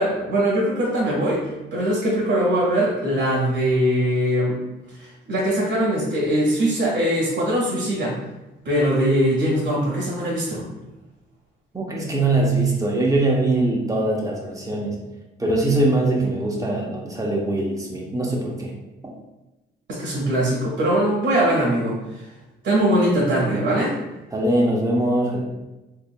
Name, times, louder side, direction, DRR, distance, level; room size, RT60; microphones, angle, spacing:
voice 1, 0.0-4.6 5.0-8.2 8.6-10.7 19.9-22.0 22.6-23.9, right 1 dB, 75° right, -5 dB, 1.5 m, -21 dB
voice 2, 11.7-14.9 15.4-18.7 19.0-19.1 24.3-25.4, right 2 dB, 15° right, -1 dB, 0.9 m, -22 dB
3.6 x 3.6 x 2.2 m, 1.0 s
cardioid pair, 90°, 20 cm